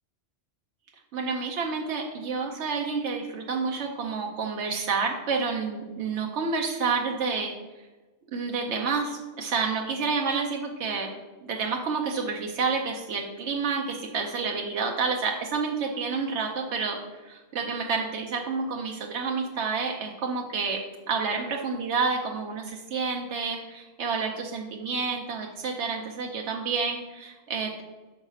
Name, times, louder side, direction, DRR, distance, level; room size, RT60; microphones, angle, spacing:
voice 1, 1.1-7.5 8.3-11.1 11.5-27.8, right 5 dB, 90° right, 1 dB, 1.0 m, -29 dB
6.0 x 4.9 x 5.5 m, 1.2 s
omnidirectional pair, 1.1 m